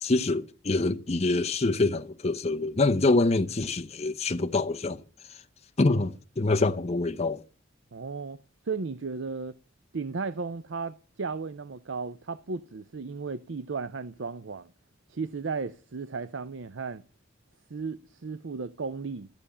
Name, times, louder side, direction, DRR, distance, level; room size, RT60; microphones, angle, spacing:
voice 1, 0.0-5.0 5.8-7.4, left 2 dB, 35° left, 0.7 m, -25 dB
voice 2, 7.9-8.4 8.7-9.5 9.9-14.7 15.1-17.0 17.7-19.3, right 4 dB, 70° right, 0.6 m, -35 dB
14.5 x 7.0 x 9.8 m
head